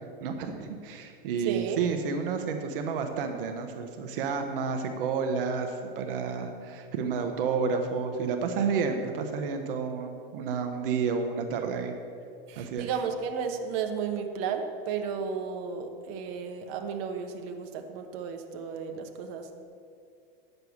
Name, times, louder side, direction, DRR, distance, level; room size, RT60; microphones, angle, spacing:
voice 1, 0.2-11.9 12.6-12.9, right 5 dB, 70° right, 5 dB, 1.1 m, -30 dB
voice 2, 1.4-1.8 12.5-19.5, right 6 dB, 50° right, 4 dB, 1.1 m, -33 dB
9.2 x 6.8 x 7.2 m, 2.4 s
hypercardioid pair, 115°, 29 cm